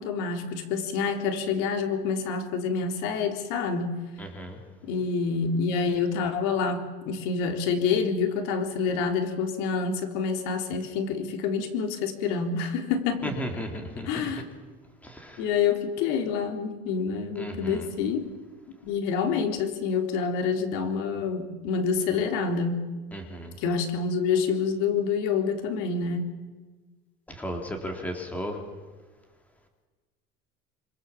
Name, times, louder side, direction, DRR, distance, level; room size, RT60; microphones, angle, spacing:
voice 1, 0.0-3.9 4.9-13.4 14.0-14.4 15.4-18.3 18.8-22.8 23.6-26.3, left 5 dB, 85° left, 5 dB, 3.8 m, -27 dB
voice 2, 4.2-4.6 13.2-14.3 15.0-15.4 17.4-17.8 23.1-23.5 27.4-28.6, equal, 5° left, 3 dB, 3.4 m, -35 dB
27.5 x 26.5 x 7.4 m, 1.3 s
cardioid pair, 170°, 21 cm